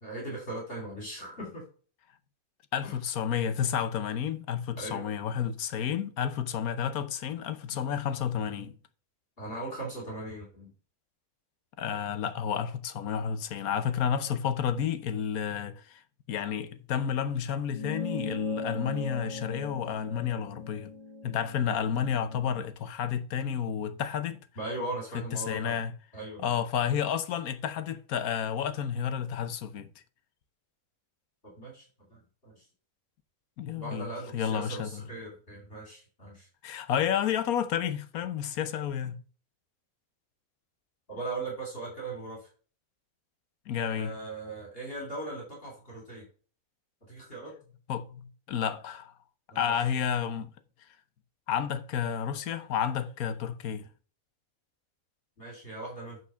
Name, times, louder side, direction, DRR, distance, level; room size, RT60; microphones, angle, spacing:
voice 1, 0.0-1.6 2.8-3.0 4.8-5.1 9.4-10.7 24.6-25.8 26.1-26.4 31.4-32.6 33.7-36.5 41.1-42.5 43.9-46.3 47.1-47.5 49.5-49.7 55.4-56.2, right 2 dB, 40° left, 3.3 m, -39 dB
voice 2, 2.7-8.7 11.8-16.0 16.3-20.9 21.2-24.4 25.1-25.9 26.4-29.9 33.6-35.0 36.6-39.2 43.7-44.1 47.9-49.1 49.5-50.5 51.5-53.9, left 8 dB, 85° left, 1.3 m, -31 dB
sound 1, 17.7-22.5, left 2 dB, 15° left, 2.8 m, -39 dB
8.4 x 4.8 x 5.6 m
omnidirectional pair, 1.5 m